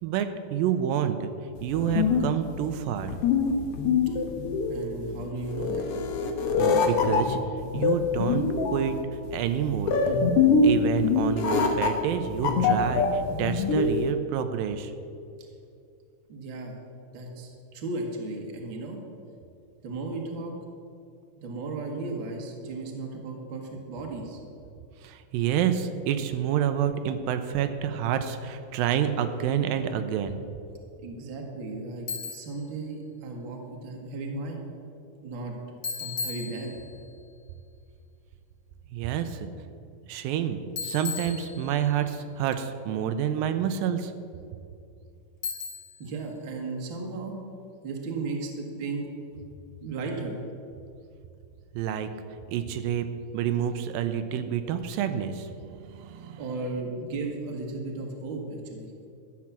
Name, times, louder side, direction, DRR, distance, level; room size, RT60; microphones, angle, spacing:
voice 1, 0.0-1.3 1.6-3.1 6.6-7.4 7.7-9.0 9.3-10.0 10.6-14.9 25.0-30.4 38.9-39.5 40.1-44.1 51.8-52.1 52.5-53.1 53.3-56.4, right 9 dB, 90° right, 9 dB, 2.4 m, -28 dB
sound 1, 1.6-14.1, left 4 dB, 70° left, 1.4 m, -24 dB
voice 2, 4.7-5.9 16.3-16.8 17.1-19.0 19.8-20.5 21.4-24.4 31.0-34.7 35.2-35.5 36.0-36.8 46.0-47.4 47.8-49.4 49.8-50.4 56.4-58.9, right 3 dB, 45° right, 1 dB, 1.8 m, -35 dB
Bicycle, 32.1-32.6 35.8-37.1 40.8-42.0 45.4-46.1, left 5 dB, 30° left, 1.4 m, -35 dB
12.0 x 7.2 x 7.3 m, 2.5 s
omnidirectional pair, 4.0 m